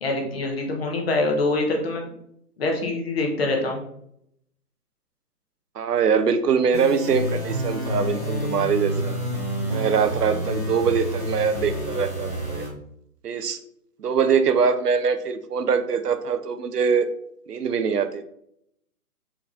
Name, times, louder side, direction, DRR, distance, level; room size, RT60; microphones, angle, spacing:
voice 1, 0.0-2.1 2.6-3.8, left 2 dB, 40° left, 1 dB, 1.1 m, -24 dB
voice 2, 5.8-9.2 9.7-12.7 13.2-13.6 14.0-17.1 17.5-18.2, right 6 dB, 80° right, 10 dB, 0.7 m, -23 dB
sound 1, 6.7-12.7, equal, 5° right, 1.0 m, -28 dB
4.5 x 4.1 x 2.5 m, 0.73 s
hypercardioid pair, 155°, 47 cm